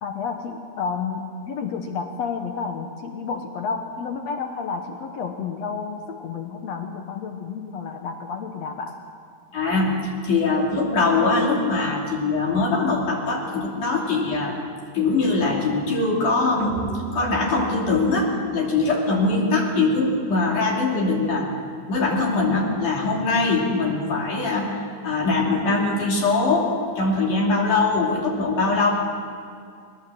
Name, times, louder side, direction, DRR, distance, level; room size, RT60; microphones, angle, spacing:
voice 1, 0.0-9.0, left 5 dB, 80° left, 5 dB, 1.5 m, -31 dB
voice 2, 9.5-14.6 14.9-16.8 17.1-21.5 21.9-28.9, left 3 dB, 55° left, -2 dB, 4.0 m, -22 dB
sound 1, 16.6-18.9, right 4 dB, 85° right, 3.3 m, -35 dB
22.5 x 19.0 x 7.7 m, 2.3 s
omnidirectional pair, 4.6 m